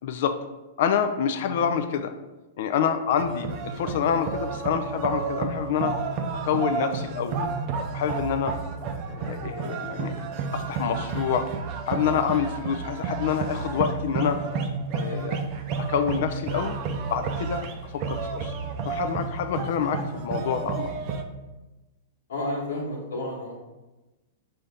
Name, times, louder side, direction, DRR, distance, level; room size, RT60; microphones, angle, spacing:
voice 1, 0.0-0.4 0.8-2.1 2.6-5.9 6.4-7.5 7.9-8.5 9.1-10.1 10.5-11.5 11.9-14.4 14.9-15.4 15.9-16.8 17.1-17.7 17.9-18.5 18.9-20.9, left 8 dB, 60° left, 7 dB, 0.3 m, -27 dB
sound 1, 3.2-21.2, right 5 dB, 45° right, 0.5 m, -31 dB
voice 2, 22.3-23.5, left 1 dB, 80° left, -3 dB, 1.3 m, -31 dB
5.5 x 2.7 x 3.4 m, 1.1 s
hypercardioid pair, 125°, 0 cm